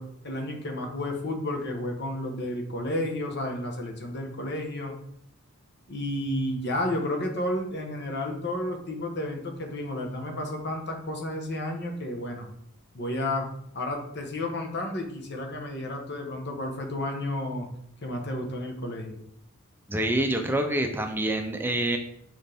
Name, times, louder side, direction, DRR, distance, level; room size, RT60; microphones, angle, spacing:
voice 1, 0.0-4.9 5.9-12.5 12.9-13.5 13.7-17.7 18.0-19.2, left 1 dB, 50° left, 2 dB, 1.3 m, -31 dB
voice 2, 19.9-22.0, right 1 dB, 10° right, 5 dB, 0.5 m, -26 dB
6.4 x 5.3 x 3.5 m, 0.71 s
head